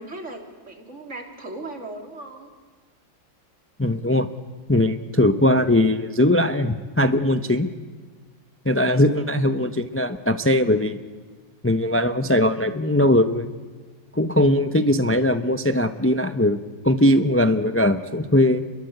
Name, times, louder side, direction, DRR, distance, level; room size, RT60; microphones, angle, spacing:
voice 1, 0.0-2.5 8.7-9.5, right 2 dB, 35° right, 3 dB, 3.8 m, -38 dB
voice 2, 3.8-4.3 4.7-7.7 8.6-11.0 11.6-13.5 14.1-18.6, left 1 dB, 20° left, 9 dB, 0.4 m, -20 dB
30.0 x 22.5 x 8.2 m, 1.4 s
omnidirectional pair, 2.1 m